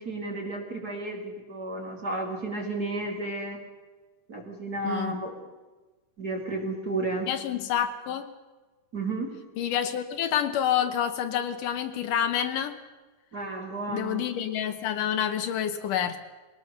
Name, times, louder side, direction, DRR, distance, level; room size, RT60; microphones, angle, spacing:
voice 1, 0.0-3.6 4.3-5.4 6.2-7.3 8.9-9.3 13.3-14.2, right 2 dB, 30° right, 1 dB, 2.7 m, -32 dB
voice 2, 7.3-8.3 9.6-12.8 13.9-16.3, left 9 dB, 75° left, 8 dB, 2.5 m, -28 dB
21.5 x 18.5 x 6.6 m, 1.2 s
omnidirectional pair, 3.9 m